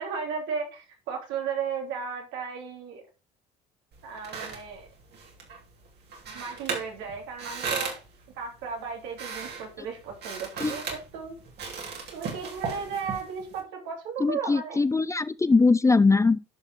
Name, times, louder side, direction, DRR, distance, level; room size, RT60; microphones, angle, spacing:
voice 1, 0.0-3.0 4.0-4.9 6.3-7.9 8.4-11.3 12.1-14.8, right 6 dB, 80° right, 3.2 m, -35 dB
sound 1, 3.9-13.6, right 4 dB, 60° right, 3.4 m, -38 dB
voice 2, 14.2-16.4, left 3 dB, 15° left, 0.5 m, -21 dB
11.0 x 5.7 x 3.8 m
supercardioid pair, 70°, 19 cm